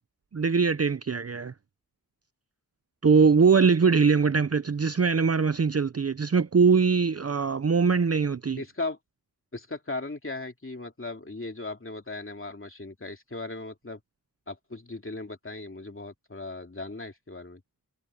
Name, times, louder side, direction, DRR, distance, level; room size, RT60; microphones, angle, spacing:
voice 1, 0.3-1.5 3.0-8.6, right 5 dB, 40° right, 0.7 m, -22 dB
voice 2, 8.6-9.0 9.5-14.0 14.5-17.6, left 2 dB, 35° left, 2.7 m, -37 dB
wide cardioid pair, 55°, 36 cm